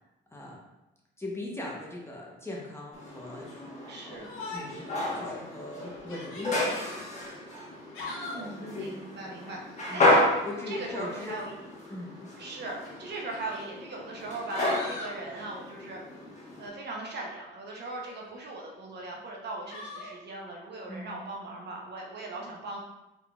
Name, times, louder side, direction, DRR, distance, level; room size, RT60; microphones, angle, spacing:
voice 1, 0.3-0.7 1.2-3.5 4.0-4.2 4.5-4.8 5.1-6.6 9.9-10.1 10.4-11.4 11.9-12.1 20.9-21.1, left 1 dB, 15° left, -3 dB, 0.9 m, -39 dB
sound 1, 2.9-16.7, left 1 dB, 35° left, 1.2 m, -32 dB
voice 2, 3.9-4.3 8.0-10.2 10.7-11.6 12.4-16.0 16.6-22.8, right 2 dB, 60° right, -1 dB, 0.9 m, -39 dB
Yell, 4.2-4.9 5.3-5.4 6.0-6.9 7.7-8.5 10.3-10.7 11.9-12.0 12.8-13.7 14.2-15.2 17.8-18.5 19.7-20.1, left 2 dB, 90° left, 0.9 m, -42 dB
3.7 x 3.5 x 2.3 m, 0.96 s
cardioid pair, 90°, 20 cm